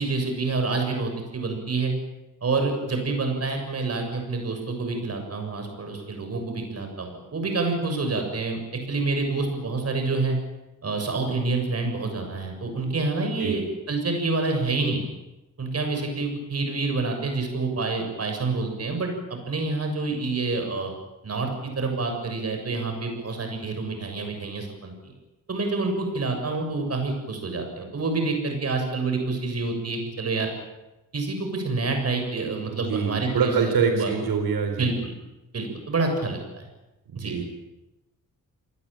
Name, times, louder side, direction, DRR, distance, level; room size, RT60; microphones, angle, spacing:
voice 1, 0.0-1.9 2.4-8.6 8.9-10.4 10.8-15.0 15.6-20.9 21.2-25.1 25.5-30.5 31.1-34.1 34.8-35.1 35.5-36.7 37.2-37.4, right 3 dB, 45° right, 4 dB, 7.3 m, -27 dB
voice 2, 32.7-34.9 37.1-37.4, right 5 dB, 85° right, 5 dB, 4.3 m, -25 dB
28.0 x 20.0 x 9.0 m, 0.99 s
wide cardioid pair, 150°, 36 cm